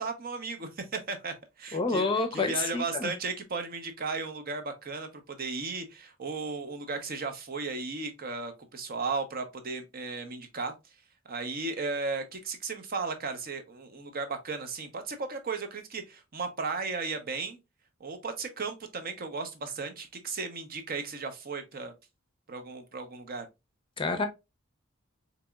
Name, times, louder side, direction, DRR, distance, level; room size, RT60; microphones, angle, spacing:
voice 1, 0.0-10.7 11.3-17.6 18.0-21.9 22.5-23.5, right 4 dB, 45° right, 0.7 m, -35 dB
voice 2, 1.7-3.1 24.0-24.3, left 3 dB, 25° left, 0.6 m, -28 dB
4.1 x 3.0 x 2.3 m
head